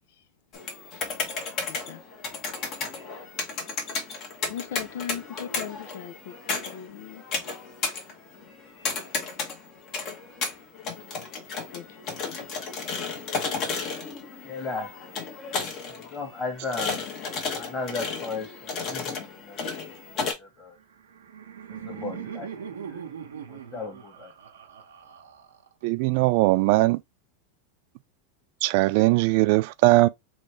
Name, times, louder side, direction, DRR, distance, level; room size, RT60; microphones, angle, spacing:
sound 1, 0.5-20.3, left 4 dB, 45° left, 1.3 m, -33 dB
voice 1, 1.6-2.0 4.5-7.2 11.7-11.9 12.2-12.5, left 9 dB, 70° left, 0.5 m, -38 dB
voice 2, 14.4-15.2 15.9-17.0 17.6-19.6 20.2-20.8 21.7-22.5 22.9-23.0 23.5-24.3, left 3 dB, 25° left, 1.6 m, -35 dB
Laughter, 20.8-25.8, right 8 dB, 85° right, 0.8 m, -40 dB
voice 3, 25.8-27.0 28.6-30.1, right 20 dB, 60° right, 0.3 m, -20 dB
3.2 x 2.7 x 3.3 m
hypercardioid pair, 105°, 0 cm